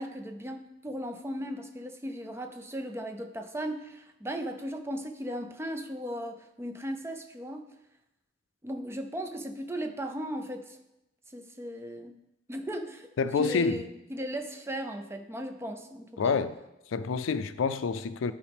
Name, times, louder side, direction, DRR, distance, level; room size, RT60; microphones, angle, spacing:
voice 1, 0.0-7.7 8.6-10.8 11.3-12.2 12.5-16.4, equal, 15° right, 6 dB, 0.4 m, -37 dB
voice 2, 13.2-13.8 16.2-16.5 16.9-18.3, left 5 dB, 90° left, 12 dB, 0.4 m, -27 dB
9.9 x 4.9 x 3.4 m, 0.91 s
head